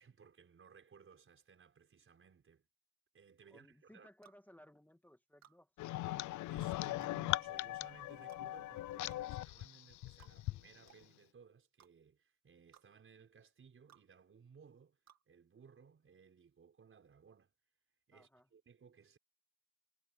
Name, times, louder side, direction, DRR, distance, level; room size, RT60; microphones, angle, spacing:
voice 1, 0.0-2.7 3.1-4.1 6.5-17.5 18.1-19.2, right 6 dB, 45° right, 5.0 m, -61 dB
voice 2, 3.5-5.7 18.1-18.5, equal, 5° left, 1.7 m, -62 dB
sound 1, 4.2-4.4 5.4-5.6 7.0-7.2 8.3-8.5 9.1-9.2 10.2-10.4 10.9-11.0 11.8-11.9 12.7-12.9 13.9-14.1 15.1-15.2, right 9 dB, 60° right, 2.4 m, -63 dB
sound 2, 5.8-10.6, left 16 dB, 75° left, 0.5 m, -40 dB
cardioid pair, 90°, 30 cm